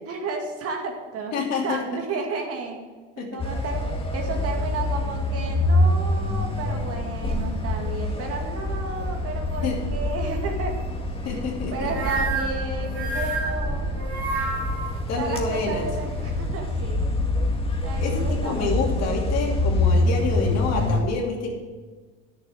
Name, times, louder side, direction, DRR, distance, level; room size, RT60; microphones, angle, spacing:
voice 1, 0.1-1.3 1.6-2.8 3.2-10.8 11.2-13.9 15.2-17.1 17.8-19.0, right 4 dB, 45° right, 2 dB, 2.2 m, -32 dB
voice 2, 1.3-1.8 3.2-3.3 9.6-9.8 11.2-11.9 15.1-15.9 18.0-21.5, left 4 dB, 55° left, 0 dB, 2.7 m, -27 dB
sound 1, 3.4-21.0, left 1 dB, 15° left, 1.9 m, -26 dB
sound 2, 11.9-15.0, right 3 dB, 90° right, 2.4 m, -29 dB
10.5 x 7.0 x 6.4 m, 1.4 s
hypercardioid pair, 75°, 32 cm